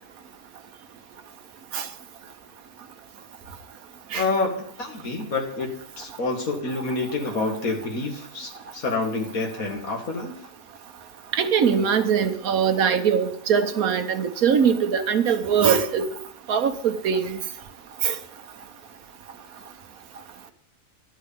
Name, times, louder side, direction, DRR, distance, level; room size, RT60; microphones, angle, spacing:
voice 1, 4.1-10.3, left 3 dB, 80° left, 2.3 m, -28 dB
voice 2, 11.3-16.1 16.5-17.4 18.0-18.1, right 7 dB, 90° right, 1.4 m, -22 dB
11.5 x 4.7 x 8.4 m
omnidirectional pair, 1.5 m